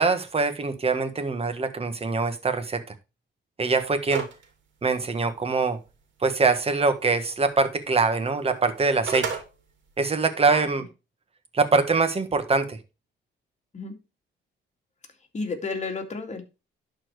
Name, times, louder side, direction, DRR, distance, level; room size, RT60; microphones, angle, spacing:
voice 1, 0.0-2.8 3.6-4.2 4.8-5.8 6.2-9.3 10.0-10.8 11.5-12.8, right 4 dB, 30° right, 9 dB, 1.6 m, -23 dB
sound 1, 4.1-4.4 4.8-4.9 8.7-9.4, right 6 dB, 70° right, 2.7 m, -29 dB
voice 2, 15.3-16.4, left 4 dB, 35° left, 4 dB, 2.3 m, -31 dB
11.0 x 4.5 x 4.8 m, 0.29 s
cardioid pair, 90°, 20 cm